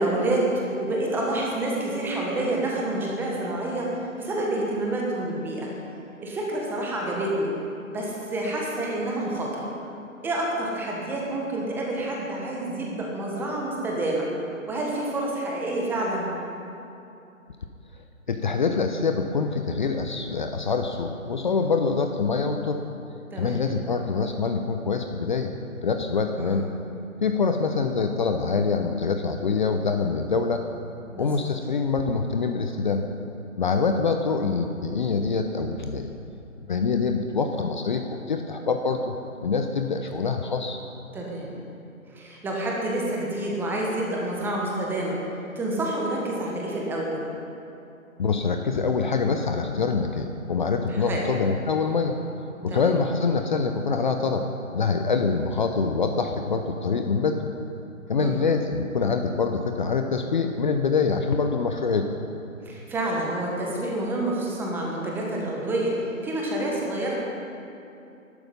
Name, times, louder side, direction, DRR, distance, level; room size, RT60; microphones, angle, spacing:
voice 1, 0.0-5.7 6.2-7.5 7.9-9.7 10.2-14.3 14.7-16.3 21.6-21.7 23.3-23.6 26.4-26.6 31.1-31.3 41.1-41.5 42.1-45.2 45.5-47.3 50.9-51.3 52.7-52.9 58.2-58.4 62.6-66.0 66.2-67.2, right 1 dB, 5° right, -3 dB, 1.3 m, -28 dB
voice 2, 18.3-22.8 23.4-25.5 25.8-26.6 27.2-30.6 31.2-33.0 33.6-36.1 36.7-40.8 48.2-52.2 52.6-54.5 54.7-57.5 58.1-62.0, left 4 dB, 35° left, 5 dB, 0.8 m, -25 dB
20.5 x 12.0 x 5.4 m, 2.7 s
figure-of-eight pair, 145°, 41 cm